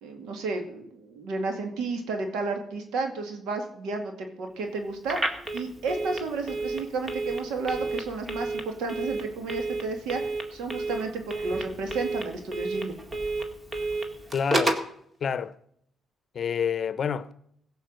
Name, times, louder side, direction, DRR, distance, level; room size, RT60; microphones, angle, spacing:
voice 1, 0.0-5.2 5.5-13.0, right 3 dB, 90° right, 2.3 m, -32 dB
Telephone, 5.0-14.9, right 2 dB, 25° right, 2.0 m, -31 dB
voice 2, 14.3-14.8 15.2-15.5 16.3-17.3, left 7 dB, 50° left, 0.8 m, -28 dB
16.0 x 5.5 x 7.7 m
cardioid pair, 90°, 0 cm